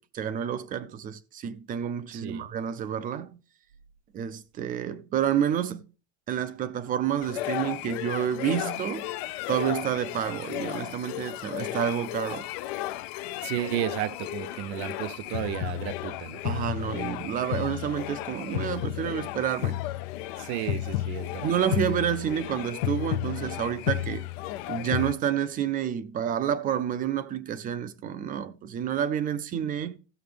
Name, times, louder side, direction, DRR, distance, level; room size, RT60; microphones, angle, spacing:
voice 1, 0.0-3.4 4.1-5.8 6.3-9.1 9.5-12.5 16.4-19.8 21.4-24.3 24.7-30.0, right 9 dB, 25° right, 0.5 m, -29 dB
voice 2, 2.1-2.5 13.4-16.5 20.4-21.6, right 14 dB, 75° right, 0.7 m, -33 dB
sound 1, 7.2-25.1, left 15 dB, 65° left, 0.6 m, -33 dB
14.5 x 6.9 x 3.4 m
cardioid pair, 155°, 33 cm